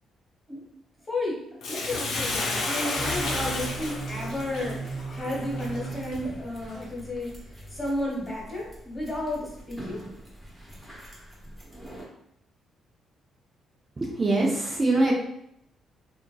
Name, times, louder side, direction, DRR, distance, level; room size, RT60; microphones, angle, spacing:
voice 1, 1.1-7.3 7.7-10.0, left 1 dB, 25° left, -4 dB, 1.3 m, -32 dB
Bathtub (filling or washing), 1.6-6.1 6.7-6.8, left 2 dB, 75° left, 0.6 m, -31 dB
sound 1, 3.0-12.1, right 2 dB, 5° right, 0.9 m, -38 dB
voice 2, 14.0-15.1, right 2 dB, 30° right, -2 dB, 0.5 m, -23 dB
2.8 x 2.5 x 2.2 m, 0.76 s
cardioid pair, 90°, 0 cm